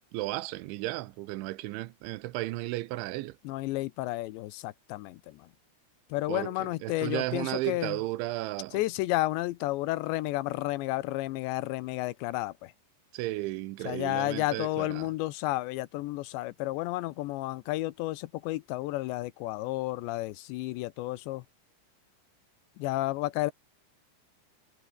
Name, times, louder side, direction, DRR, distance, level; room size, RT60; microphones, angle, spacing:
voice 1, 0.1-3.4 6.3-8.8 13.1-15.1, right 18 dB, 90° right, 3.4 m, -34 dB
voice 2, 3.4-5.5 6.1-8.0 8.7-12.7 13.9-21.4 22.8-23.5, left 18 dB, 80° left, 3.0 m, -32 dB
omnidirectional pair, 5.2 m